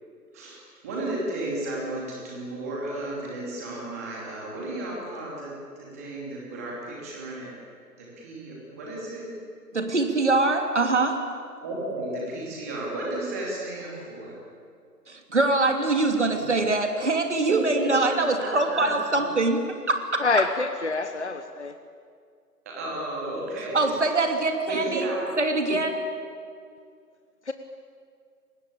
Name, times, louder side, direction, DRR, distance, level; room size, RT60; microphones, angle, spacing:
voice 1, 0.3-7.5 7.9-9.3 11.6-14.4 16.3-16.7 17.5-18.9 22.6-23.8 24.7-25.3, right 2 dB, 10° right, -4 dB, 2.9 m, -33 dB
voice 2, 9.7-11.2 15.1-20.2 23.7-25.1 25.4-26.0, right 3 dB, 45° right, 5 dB, 3.0 m, -23 dB
voice 3, 20.2-21.7 27.5-27.6, left 3 dB, 45° left, 8 dB, 1.2 m, -26 dB
29.5 x 20.0 x 8.6 m, 2.2 s
figure-of-eight pair, 165°, 48 cm